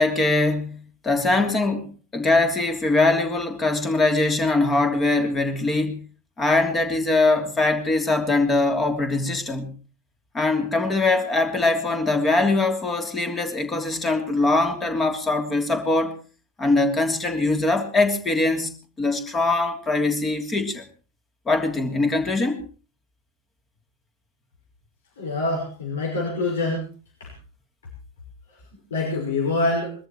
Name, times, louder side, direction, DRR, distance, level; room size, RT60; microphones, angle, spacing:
voice 1, 0.0-6.0 6.4-9.7 10.3-16.1 16.6-20.8 21.5-22.6, left 2 dB, 15° left, 3.2 m, -22 dB
voice 2, 25.2-26.8 28.9-29.9, left 2 dB, 60° left, 5.8 m, -25 dB
22.0 x 14.0 x 4.4 m
figure-of-eight pair, 90°, 0 cm